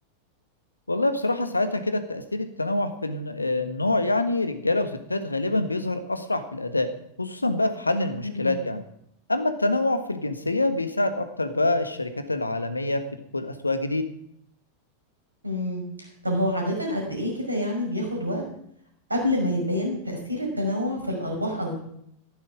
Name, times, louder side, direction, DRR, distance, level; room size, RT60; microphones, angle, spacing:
voice 1, 0.9-6.9 7.2-8.8 9.3-13.0 13.3-14.0, left 2 dB, 80° left, 9 dB, 1.5 m, -26 dB
voice 2, 8.2-8.6 15.4-18.4 19.1-21.7, left 1 dB, 85° right, 1 dB, 5.6 m, -27 dB
15.0 x 11.5 x 5.0 m, 0.71 s
figure-of-eight pair, 90°, 0 cm